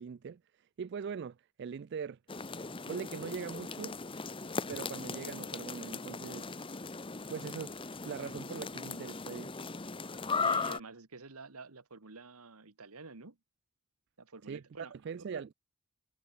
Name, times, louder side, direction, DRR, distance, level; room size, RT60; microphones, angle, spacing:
voice 1, 0.0-2.2 2.9-4.0 4.7-6.5 7.3-7.7 8.0-9.5 14.5-14.6 14.9-15.5, right 6 dB, 50° right, 0.3 m, -41 dB
sound 1, 2.3-10.8, left 4 dB, 25° left, 1.0 m, -38 dB
voice 2, 10.3-13.4 14.2-15.4, right 4 dB, 90° right, 1.7 m, -49 dB
head